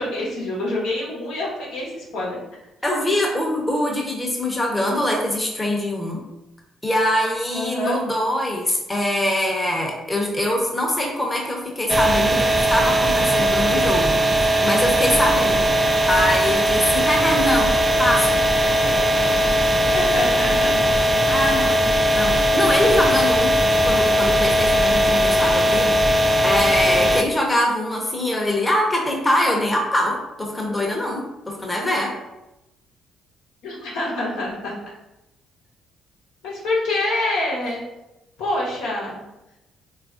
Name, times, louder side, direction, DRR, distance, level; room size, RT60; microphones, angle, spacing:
voice 1, 0.0-2.4 7.5-8.0 19.9-21.0 33.6-34.7 36.4-37.8 38.4-39.2, left 2 dB, 80° left, -5 dB, 0.8 m, -26 dB
voice 2, 2.8-6.2 6.8-15.7 16.1-18.4 21.3-26.0 26.4-32.1, left 1 dB, 15° left, -1 dB, 0.7 m, -23 dB
sound 1, 11.9-27.2, equal, 25° right, 0.3 m, -19 dB
3.3 x 2.4 x 2.4 m, 0.94 s
supercardioid pair, 60°, 0 cm